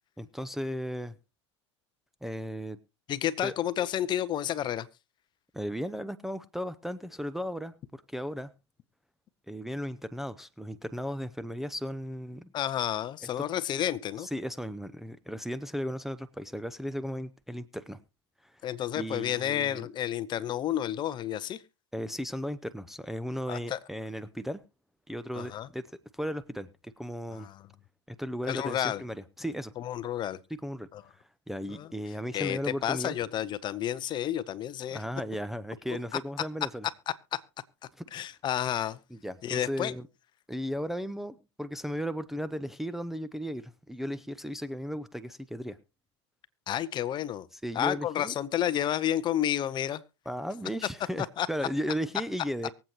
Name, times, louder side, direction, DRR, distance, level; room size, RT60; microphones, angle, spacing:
voice 1, 0.2-1.1 2.2-2.8 3.4-3.5 5.5-8.5 9.5-12.5 14.2-18.0 18.4-18.6 18.9-19.9 21.9-24.6 25.1-25.9 26.1-27.5 28.1-29.7 30.5-33.2 34.9-36.9 38.0-38.1 39.1-40.1 40.5-45.8 47.5-48.4 50.3-52.7, equal, ahead, 0.5 m, -36 dB
voice 2, 3.1-4.9 12.5-14.3 18.6-21.6 23.5-23.8 25.4-25.7 27.4-27.5 28.5-29.0 29.8-30.4 30.9-31.0 31.8-31.9 32.3-35.0 37.3-37.4 38.1-39.0 39.4-39.9 46.7-47.5 47.7-50.0 51.4-51.5, left 11 dB, 30° left, 0.7 m, -30 dB
23.5 x 8.0 x 2.9 m
hypercardioid pair, 110°, 15 cm